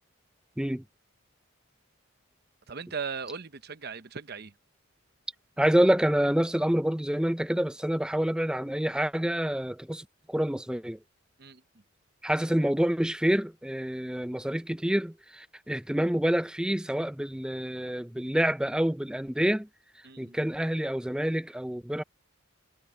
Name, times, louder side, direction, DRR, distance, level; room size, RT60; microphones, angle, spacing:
voice 1, 2.7-4.5 11.4-11.6 20.0-20.4, right 5 dB, 50° right, 0.8 m, -38 dB
voice 2, 5.6-11.0 12.2-19.7 20.2-22.0, equal, 5° right, 0.5 m, -27 dB
head